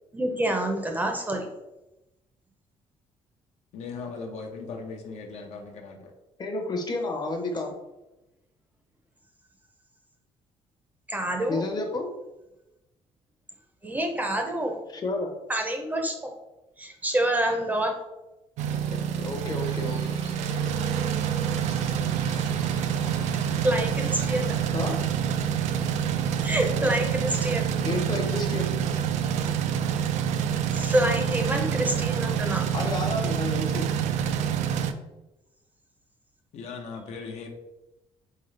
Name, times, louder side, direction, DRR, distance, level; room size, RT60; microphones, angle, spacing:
voice 1, 0.1-1.5 11.1-11.6 13.8-14.8 15.5-16.3 16.8-17.9 23.6-24.6 26.4-27.7 30.7-32.7, right 1 dB, 15° right, 3 dB, 0.6 m, -27 dB
voice 2, 3.7-6.1 30.7-30.8 36.5-37.5, left 4 dB, 65° left, 3 dB, 0.7 m, -38 dB
voice 3, 6.4-7.7 11.5-12.1 14.9-15.4 18.9-20.0 24.7-25.0 27.8-28.7 32.7-33.9, left 2 dB, 35° left, 3 dB, 0.8 m, -30 dB
sound 1, 18.6-34.9, right 8 dB, 85° right, 0.4 m, -27 dB
sound 2, 19.6-24.6, right 3 dB, 70° right, 0.9 m, -45 dB
3.8 x 3.6 x 3.2 m, 0.98 s
cardioid pair, 130°, 12 cm